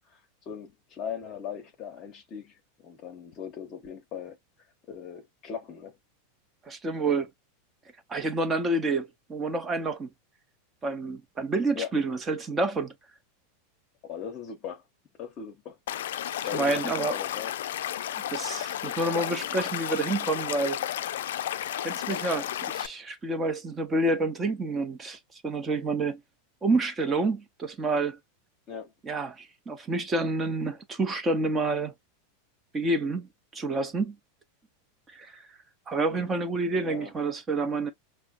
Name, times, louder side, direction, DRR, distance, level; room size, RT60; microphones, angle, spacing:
voice 1, 0.1-4.4 4.9-6.0 11.7-11.9 14.0-14.8 15.2-15.8 16.4-17.5 28.7-28.9 36.1-36.4 36.8-37.1, left 8 dB, 30° left, 0.9 m, -39 dB
voice 2, 6.7-7.3 8.1-10.1 10.8-12.9 16.5-17.2 18.3-20.8 21.8-26.2 26.6-28.2 29.0-31.9 32.7-34.2 35.1-35.5 35.9-37.9, right 2 dB, 15° right, 0.7 m, -28 dB
Stream / Liquid, 15.9-22.9, left 11 dB, 85° left, 0.3 m, -32 dB
5.5 x 2.1 x 2.4 m
supercardioid pair, 160°, 0 cm